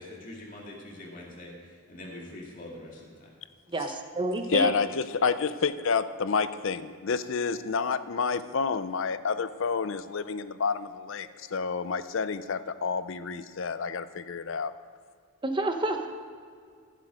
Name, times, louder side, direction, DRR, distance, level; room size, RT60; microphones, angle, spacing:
voice 1, 0.0-3.3, left 1 dB, 40° left, 2.3 m, -44 dB
voice 2, 3.7-4.7 11.2-11.3 15.4-16.1, right 2 dB, 20° right, 0.9 m, -29 dB
voice 3, 4.5-14.7, left 5 dB, 60° left, 0.5 m, -29 dB
15.0 x 7.6 x 5.1 m
head